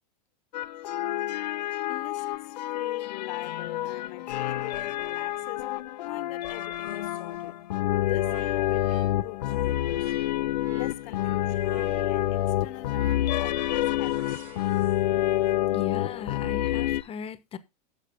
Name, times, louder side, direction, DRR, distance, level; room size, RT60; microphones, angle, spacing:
sound 1, 0.5-17.0, left 13 dB, 80° left, 0.5 m, -28 dB
voice 1, 1.9-5.7 6.0-7.6 7.9-10.1 10.7-14.4, left 18 dB, 55° left, 1.1 m, -43 dB
sound 2, 6.6-9.1 9.4-15.5, right 8 dB, 60° right, 1.6 m, -53 dB
voice 2, 15.7-17.6, left 7 dB, 25° left, 1.1 m, -38 dB
10.5 x 6.8 x 3.5 m
hypercardioid pair, 115°, 21 cm